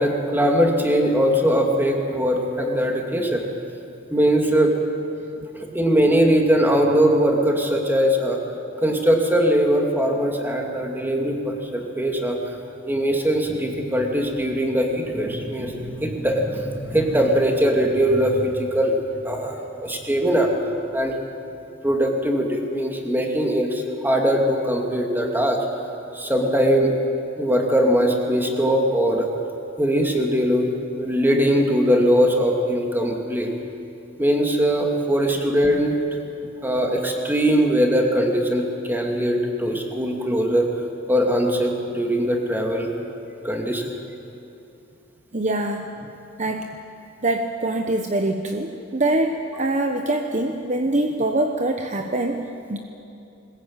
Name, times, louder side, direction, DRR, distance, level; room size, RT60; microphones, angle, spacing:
voice 1, 0.0-3.5 4.1-4.8 5.6-8.4 8.8-12.6 12.8-19.0 19.2-20.5 20.9-21.2 21.8-25.6 26.1-26.9 27.4-29.3 29.8-30.7 31.0-33.5 34.2-36.0 36.6-40.7 41.1-42.9 43.4-43.9, equal, 10° right, 1 dB, 2.6 m, -21 dB
voice 2, 45.3-45.9 46.4-46.7 47.2-52.8, right 2 dB, 40° right, 4 dB, 1.1 m, -24 dB
21.0 x 20.5 x 8.9 m, 2.7 s
head